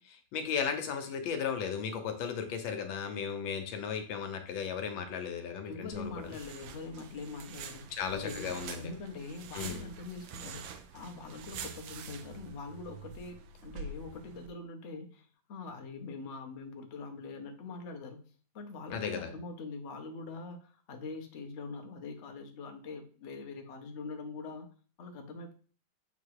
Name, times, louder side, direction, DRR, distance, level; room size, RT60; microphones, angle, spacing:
voice 1, 0.0-6.1 7.9-8.9 9.5-9.9 18.9-19.2, left 7 dB, 80° left, 6 dB, 1.6 m, -35 dB
voice 2, 5.6-8.5 8.8-18.3 18.5-24.7 25.0-25.5, left 3 dB, 50° left, 4 dB, 0.9 m, -43 dB
sound 1, 5.9-14.5, right 5 dB, 80° right, 1.4 m, -46 dB
7.0 x 3.0 x 4.7 m, 0.42 s
omnidirectional pair, 2.1 m